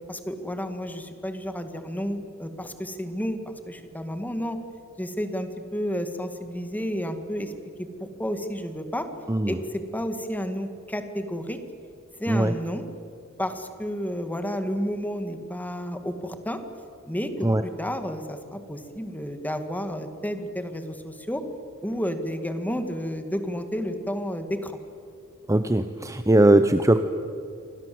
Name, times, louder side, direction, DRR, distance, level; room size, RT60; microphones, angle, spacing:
voice 1, 0.1-3.4 3.7-4.6 5.0-7.5 8.0-9.1 9.5-11.6 12.2-12.8 13.4-16.6 17.1-21.4 21.8-24.7, equal, 10° left, 8 dB, 2.0 m, -31 dB
voice 2, 25.5-27.0, right 1 dB, 15° right, 9 dB, 0.8 m, -20 dB
28.5 x 25.0 x 7.8 m, 2.5 s
head